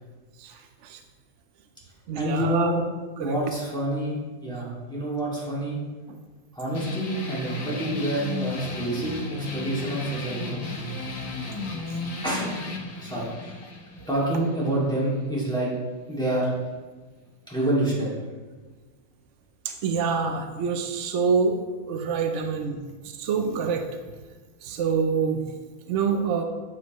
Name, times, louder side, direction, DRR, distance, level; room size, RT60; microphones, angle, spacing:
voice 1, 0.4-1.0 2.1-2.7 3.2-3.4 6.1-6.2 11.9-12.0 19.6-21.6 21.9-22.8 23.0-23.9 24.6-25.4 25.9-26.4, right 5 dB, 65° right, 5 dB, 0.9 m, -26 dB
voice 2, 2.2-2.8 3.2-5.8 6.5-10.6 12.2-12.5 13.0-13.6 14.1-15.7 16.1-16.5 17.5-18.2, right 1 dB, 5° left, -7 dB, 2.2 m, -27 dB
sound 1, 6.8-15.8, left 3 dB, 80° left, 1.6 m, -35 dB
8.0 x 7.4 x 3.1 m, 1.3 s
omnidirectional pair, 1.5 m